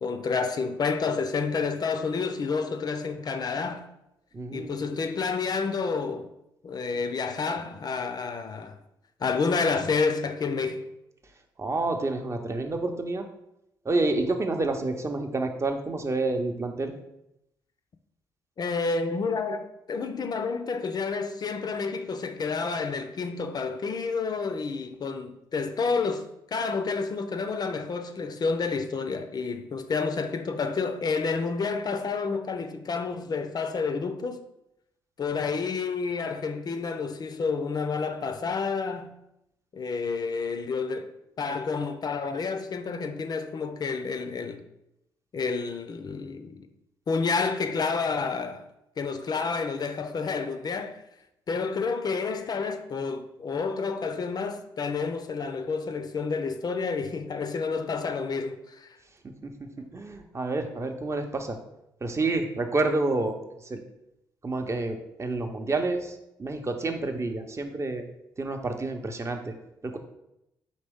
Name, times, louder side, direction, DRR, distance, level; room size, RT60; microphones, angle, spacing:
voice 1, 0.0-3.9 4.5-6.3 6.6-8.8 9.2-10.9 18.6-34.4 35.2-39.2 39.7-41.1 41.4-44.6 45.3-46.7 47.1-48.7 49.0-51.0 51.5-59.0, left 4 dB, 45° left, 0.4 m, -29 dB
voice 2, 4.3-4.8 11.6-13.3 13.8-16.9 59.2-61.6 62.0-63.3 63.6-63.8 64.4-68.0 68.4-69.5 69.8-70.0, right 2 dB, 30° right, 0.6 m, -29 dB
4.2 x 3.0 x 3.5 m
supercardioid pair, 50°, 9 cm